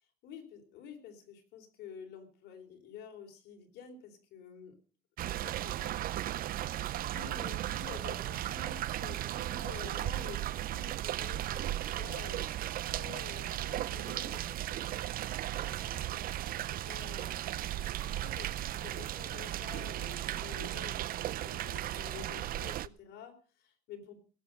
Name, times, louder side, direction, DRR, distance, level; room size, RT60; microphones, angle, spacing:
voice 1, 0.2-4.8 5.2-6.5 7.0-14.9 15.6-16.2 16.7-24.2, left 7 dB, 80° left, 4 dB, 3.9 m, -50 dB
sound 1, 5.2-22.9, right 13 dB, 60° right, 0.6 m, -36 dB
18.0 x 8.1 x 7.7 m, 0.41 s
cardioid pair, 110°, 17 cm